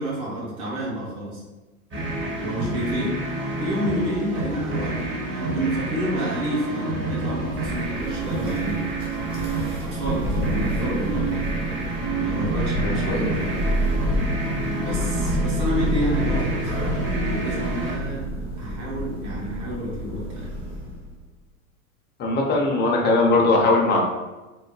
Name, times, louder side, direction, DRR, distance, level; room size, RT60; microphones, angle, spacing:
voice 1, 0.0-1.4 2.4-3.2 3.5-8.8 9.8-11.5 12.2-13.5 14.8-16.8 17.2-18.3 18.6-20.5, equal, 45° right, -5 dB, 1.3 m, -29 dB
sound 1, 1.9-18.0, right 2 dB, 25° right, 1.2 m, -29 dB
Thunder, 7.4-21.1, equal, 10° right, 0.8 m, -28 dB
voice 2, 12.8-13.2 22.2-24.0, left 2 dB, 25° left, 0 dB, 0.7 m, -20 dB
3.4 x 2.1 x 3.2 m, 1.2 s
hypercardioid pair, 110°, 43 cm